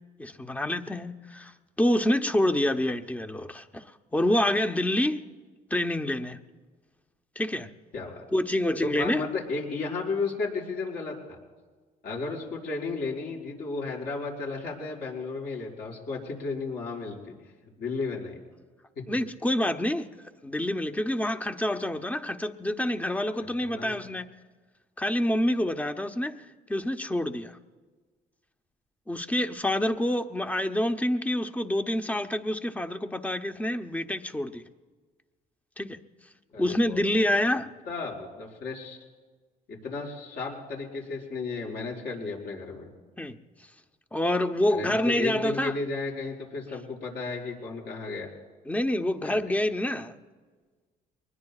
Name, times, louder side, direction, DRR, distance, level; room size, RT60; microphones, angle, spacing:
voice 1, 0.2-1.5 1.8-3.8 4.1-5.2 5.7-6.4 7.4-7.7 8.3-9.2 19.1-20.1 20.4-24.3 25.0-26.4 26.7-27.6 29.1-34.6 35.8-36.0 36.6-37.7 43.2-43.3 44.1-45.7 48.7-50.2, left 1 dB, 10° left, 0.8 m, -27 dB
voice 2, 7.9-8.2 8.8-11.4 12.0-17.3 17.8-18.4 19.0-19.1 23.4-24.0 36.5-37.2 37.9-39.0 39.7-42.9 44.7-48.3 49.2-49.5, left 4 dB, 65° left, 5.5 m, -34 dB
23.5 x 20.5 x 2.4 m
cardioid pair, 110°, 17 cm